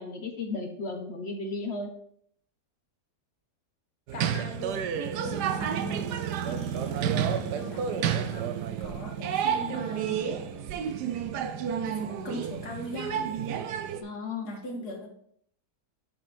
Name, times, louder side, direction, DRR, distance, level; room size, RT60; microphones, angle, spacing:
voice 1, 0.0-1.9 14.0-14.5, left 3 dB, 45° left, 3 dB, 1.1 m, -34 dB
voice 2, 4.1-4.9 5.2-6.1 6.5-10.3 11.8-13.3 14.4-15.1, left 1 dB, 70° left, 0 dB, 2.1 m, -40 dB
sound 1, 4.1-14.0, right 8 dB, 75° right, 1.2 m, -30 dB
6.9 x 5.2 x 4.3 m, 0.66 s
omnidirectional pair, 1.8 m